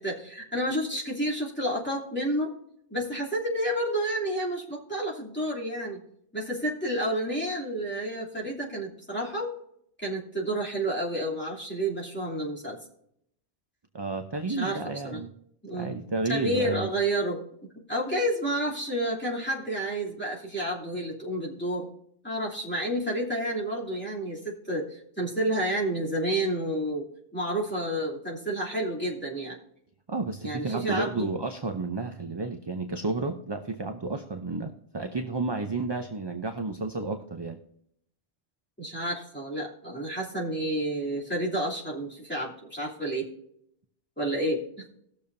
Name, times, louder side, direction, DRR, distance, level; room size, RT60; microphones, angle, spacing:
voice 1, 0.0-2.5 2.9-6.0 6.3-9.5 10.0-12.8 14.4-14.8 15.1-15.2 15.6-16.0 16.3-21.9 22.2-27.1 27.3-29.6 30.4-31.3 38.8-43.3 44.2-44.9, right 1 dB, 10° left, -5 dB, 2.9 m, -30 dB
voice 2, 13.9-15.3 15.7-16.9 30.1-37.6, right 3 dB, 30° right, 6 dB, 0.6 m, -31 dB
19.0 x 6.9 x 2.7 m, 0.71 s
omnidirectional pair, 1.2 m